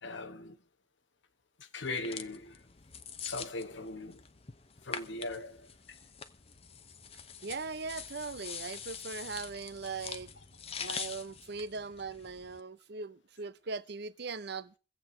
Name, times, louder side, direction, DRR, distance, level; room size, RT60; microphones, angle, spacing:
voice 1, 0.0-0.6 1.6-2.6 3.2-4.2 4.8-5.7 10.8-11.1, left 2 dB, 65° left, 1.3 m, -40 dB
sound 1, 1.8-12.6, left 6 dB, 30° left, 0.9 m, -45 dB
voice 2, 7.4-10.3 10.8-14.7, right 4 dB, 55° right, 0.7 m, -40 dB
24.0 x 8.1 x 4.4 m
head